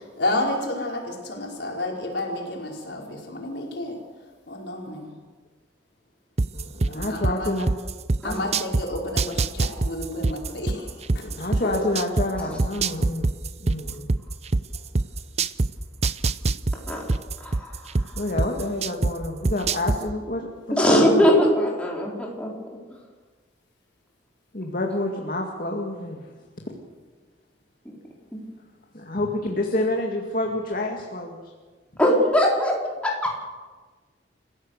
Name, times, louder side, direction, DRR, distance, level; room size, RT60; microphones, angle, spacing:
voice 1, 0.0-4.0 4.5-5.1 6.9-7.5 8.2-11.5, left 1 dB, 70° left, -1 dB, 5.2 m, -30 dB
sound 1, 6.4-8.8 9.2-12.3 12.6-15.7 16.0-19.1 19.4-20.0, right 3 dB, 35° right, 0.6 m, -22 dB
voice 2, 6.5-7.7 11.3-13.3 13.6-14.1 18.1-21.3 24.5-26.2 28.9-31.4, left 1 dB, 50° left, 1 dB, 2.1 m, -28 dB
voice 3, 17.4-17.7 20.7-22.1 22.4-22.5 32.0-32.7 33.0-33.4, equal, 5° left, -3 dB, 4.4 m, -20 dB
29.0 x 15.5 x 6.6 m, 1.4 s
head